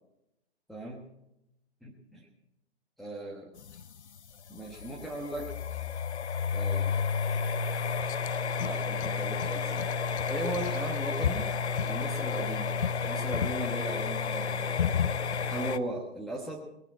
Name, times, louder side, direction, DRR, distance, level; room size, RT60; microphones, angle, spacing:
voice 1, 0.7-1.1 1.8-2.3 3.0-3.5 4.5-5.5 6.5-7.0 8.6-9.9 10.3-11.5 11.8-14.9 15.5-16.6, right 1 dB, ahead, -5 dB, 1.3 m, -37 dB
sound 1, 3.6-15.8, left 6 dB, 85° left, 0.8 m, -31 dB
20.5 x 10.5 x 4.7 m, 0.85 s
hypercardioid pair, 145°, 33 cm